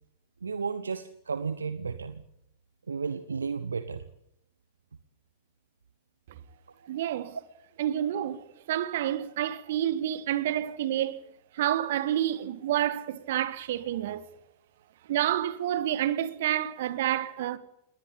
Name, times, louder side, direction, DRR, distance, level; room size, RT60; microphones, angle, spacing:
voice 1, 0.4-2.2 2.9-4.0, right 5 dB, 75° right, 1.0 m, -33 dB
voice 2, 6.9-7.4 7.8-11.2 11.5-14.2 15.1-17.6, right 12 dB, 55° right, 1.5 m, -29 dB
19.5 x 19.0 x 8.6 m
figure-of-eight pair, 90°, 0 cm